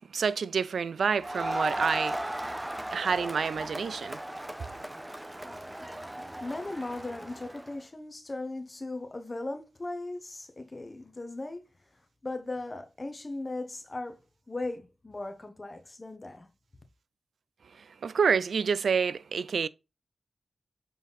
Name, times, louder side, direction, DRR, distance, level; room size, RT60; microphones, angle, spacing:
voice 1, 0.0-2.3 2.9-4.2 17.8-19.7, right 6 dB, 85° right, 0.4 m, -28 dB
Crowd, 1.2-7.7, right 1 dB, 15° right, 0.7 m, -36 dB
voice 2, 6.4-11.6 12.2-14.2 14.5-16.5, left 2 dB, 35° left, 1.2 m, -38 dB
7.1 x 3.8 x 4.0 m
wide cardioid pair, 70°, 0 cm